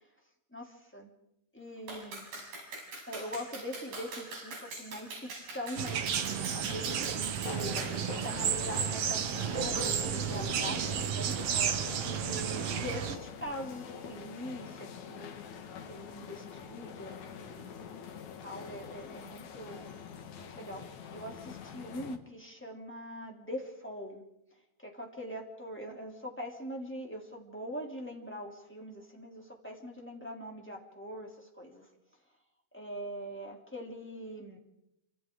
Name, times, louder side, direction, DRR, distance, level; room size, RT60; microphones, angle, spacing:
voice 1, 0.5-1.1 1.5-2.3 3.1-11.4 12.0-15.3 15.9-17.7 18.4-19.9 20.4-24.2 24.8-31.9 32.7-34.6, equal, 5° left, 0 dB, 2.4 m, -42 dB
Clapping, 1.9-8.0, right 2 dB, 85° right, 8.9 m, -43 dB
sound 1, 5.8-13.2, right 8 dB, 70° right, 1.5 m, -32 dB
sound 2, 7.4-22.2, left 7 dB, 60° left, 2.4 m, -45 dB
28.5 x 26.5 x 3.8 m, 0.82 s
omnidirectional pair, 4.6 m